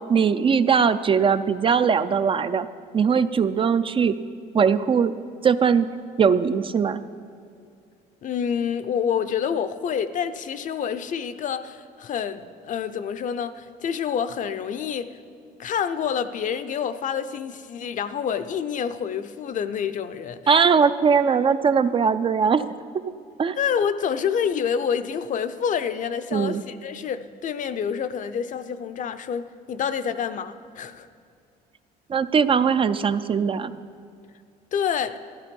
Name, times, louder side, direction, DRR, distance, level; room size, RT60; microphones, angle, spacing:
voice 1, 0.1-2.7 2.9-4.2 4.5-5.1 5.4-5.9 6.2-7.0 20.5-22.7 23.4-23.6 26.3-26.6 32.1-33.7, right 6 dB, 30° right, 12 dB, 0.4 m, -20 dB
voice 2, 8.2-15.2 15.6-20.6 23.6-31.1 34.7-35.2, left 7 dB, 50° left, 12 dB, 0.6 m, -28 dB
12.5 x 11.5 x 5.3 m, 2.5 s
cardioid pair, 110°, 17 cm